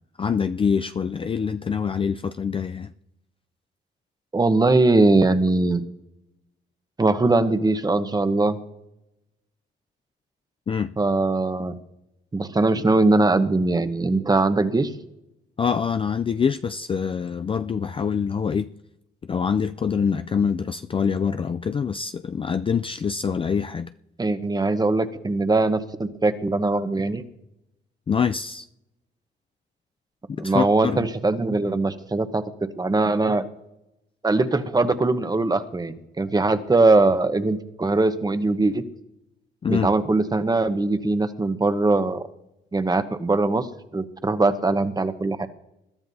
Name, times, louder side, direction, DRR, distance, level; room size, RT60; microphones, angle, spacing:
voice 1, 0.2-2.9 10.7-10.9 15.6-18.7 19.3-23.9 28.1-28.7 30.4-31.1 39.6-39.9, left 6 dB, 25° left, 0.4 m, -25 dB
voice 2, 4.3-5.8 7.0-8.6 11.0-11.8 12.3-14.9 24.2-27.2 30.4-32.4 32.8-33.4 34.2-38.8 39.7-42.3 42.7-45.5, right 2 dB, 20° right, 1.0 m, -21 dB
21.0 x 12.5 x 2.8 m
cardioid pair, 90°, 20 cm